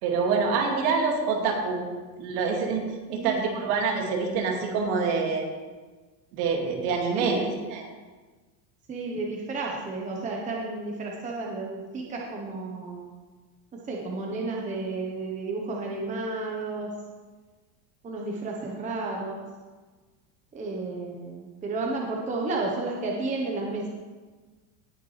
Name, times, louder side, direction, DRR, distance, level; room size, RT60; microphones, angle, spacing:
voice 1, 0.0-1.8 2.2-5.5 6.3-7.9, right 4 dB, 55° right, 0 dB, 2.4 m, -26 dB
voice 2, 3.1-3.4 7.1-7.4 8.9-13.0 13.7-16.9 18.0-19.4 20.5-23.9, right 3 dB, 15° right, -1 dB, 1.0 m, -32 dB
18.0 x 6.6 x 3.3 m, 1.3 s
supercardioid pair, 160°, 48 cm